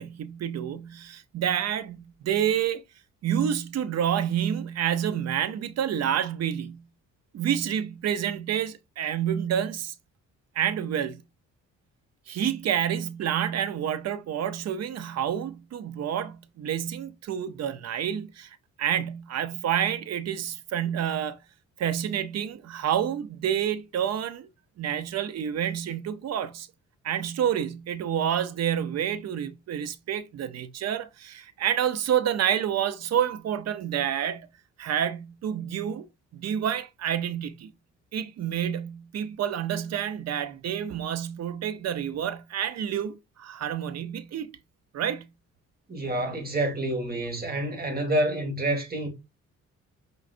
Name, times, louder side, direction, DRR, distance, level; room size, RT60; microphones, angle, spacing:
voice 1, 0.0-2.8 3.2-6.8 7.3-9.9 10.5-11.2 12.3-21.4 21.8-24.5 24.8-26.7 27.0-34.5 34.8-36.1 36.3-37.7 38.1-44.5 44.9-45.3, right 9 dB, 60° right, 0.7 m, -28 dB
voice 2, 45.9-49.1, right 1 dB, 30° right, 2.0 m, -28 dB
5.9 x 3.2 x 2.5 m
cardioid pair, 90°, 30 cm